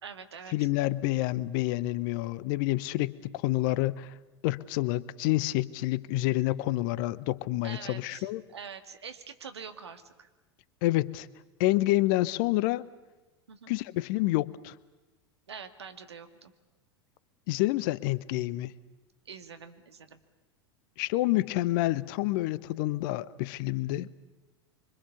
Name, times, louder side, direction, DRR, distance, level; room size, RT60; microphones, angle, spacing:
voice 1, 0.0-0.7 7.6-10.3 13.5-13.7 15.5-16.5 19.3-20.2, right 6 dB, 75° right, 9 dB, 1.8 m, -45 dB
voice 2, 0.5-4.1 4.4-8.4 10.8-11.3 11.6-12.9 13.7-14.7 17.5-18.7 21.0-24.1, left 17 dB, 50° left, 20 dB, 0.8 m, -28 dB
25.0 x 24.5 x 6.9 m, 1.1 s
figure-of-eight pair, 80°, 14 cm